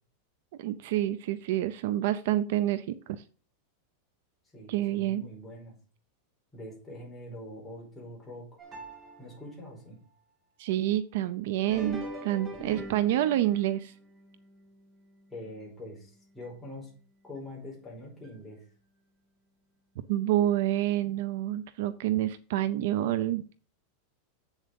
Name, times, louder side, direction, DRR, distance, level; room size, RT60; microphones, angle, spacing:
voice 1, 0.6-3.2 4.7-5.3 10.6-13.9 20.1-23.4, right 13 dB, 55° right, 14 dB, 0.6 m, -28 dB
voice 2, 4.5-5.7 6.5-8.6 9.2-10.0 15.3-16.9 17.2-18.6, left 1 dB, 5° left, -5 dB, 4.7 m, -44 dB
sound 1, 8.6-9.7 11.6-16.0 16.4-16.5 17.4-17.5 18.2-18.3, right 1 dB, 15° right, 2.4 m, -44 dB
7.8 x 7.2 x 5.3 m, 0.39 s
supercardioid pair, 170°, 0 cm